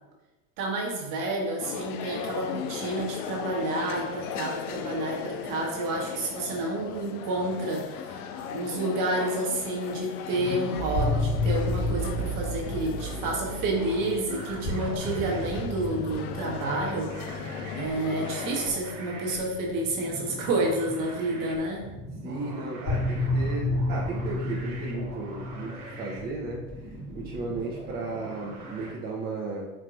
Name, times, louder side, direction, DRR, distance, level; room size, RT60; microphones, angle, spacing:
voice 1, 0.6-8.2 8.5-17.3 17.7-21.9, right 2 dB, 45° right, -1 dB, 1.3 m, -29 dB
sound 1, 1.6-18.8, left 8 dB, 75° left, 0.5 m, -37 dB
sound 2, 10.7-20.9 22.9-27.9, left 1 dB, 45° left, 1.4 m, -32 dB
sound 3, 14.3-28.9, right 2 dB, 75° right, 1.3 m, -43 dB
voice 2, 22.2-26.6 27.1-29.7, right 3 dB, 20° right, -4 dB, 0.7 m, -35 dB
4.6 x 3.7 x 2.4 m, 1.1 s
hypercardioid pair, 90°, 45 cm